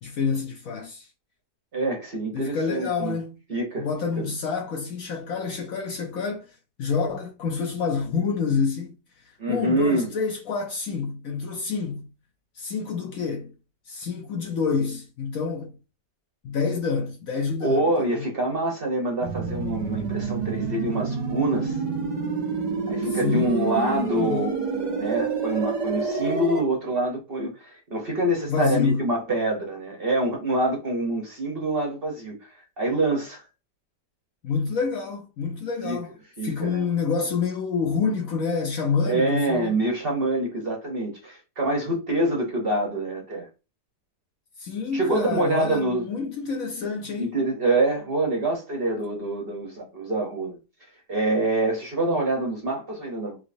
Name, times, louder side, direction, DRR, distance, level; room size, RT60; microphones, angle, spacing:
voice 1, 0.0-1.1 2.3-3.4 3.8-9.0 9.2-12.0 12.6-13.5 13.9-15.7 16.4-18.3 23.1-24.4 28.5-29.1 34.4-36.1 36.4-39.8 44.6-47.4, left 5 dB, 65° left, 0.9 m, -28 dB
voice 2, 1.7-3.2 3.5-3.9 4.2-4.3 9.4-10.1 17.6-21.8 22.9-33.4 35.8-36.0 36.4-36.9 39.0-43.5 44.9-46.1 47.2-50.6 51.1-53.4, right 2 dB, 45° right, 0.8 m, -26 dB
sound 1, 19.2-26.6, right 5 dB, 85° right, 0.3 m, -28 dB
3.6 x 3.3 x 2.5 m
omnidirectional pair, 1.8 m